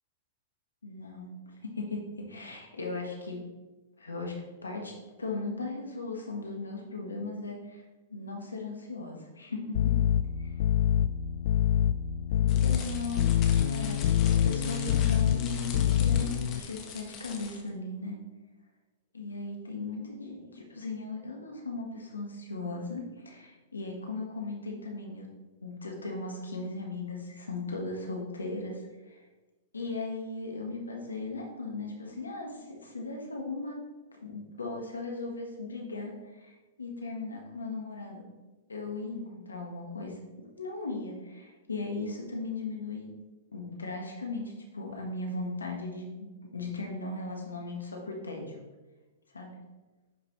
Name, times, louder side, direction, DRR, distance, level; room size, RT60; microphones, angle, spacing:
voice 1, 0.8-3.4 4.0-7.8 8.1-10.0 10.4-10.6 12.6-13.2 13.7-18.1 19.1-25.3 25.6-29.2 29.7-33.8 34.2-38.2 38.7-40.2 40.6-43.1 43.5-48.5 49.3-49.5, left 3 dB, 90° left, 1 dB, 1.6 m, -37 dB
sound 1, 9.7-16.6, left 10 dB, 60° left, 0.3 m, -26 dB
sound 2, 12.5-17.7, left 5 dB, 35° left, 1.5 m, -42 dB
11.0 x 5.4 x 3.2 m, 1.2 s
hypercardioid pair, 105°, 0 cm